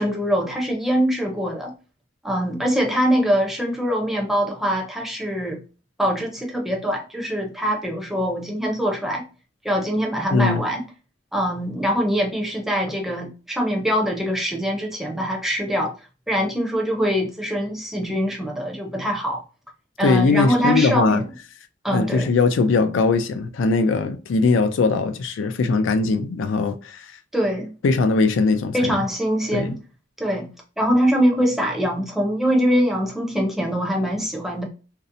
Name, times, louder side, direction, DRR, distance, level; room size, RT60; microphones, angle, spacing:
voice 1, 0.0-1.7 2.2-5.6 6.0-9.2 9.6-10.8 11.3-15.9 16.3-19.4 20.0-21.3 21.8-22.3 27.3-27.7 28.7-29.8 30.2-30.5 30.8-34.6, equal, ahead, 0.5 m, -23 dB
voice 2, 10.3-10.6 20.0-21.2 21.9-27.1 27.8-28.9 29.5-29.8, left 4 dB, 85° left, 0.4 m, -20 dB
2.6 x 2.0 x 2.5 m
head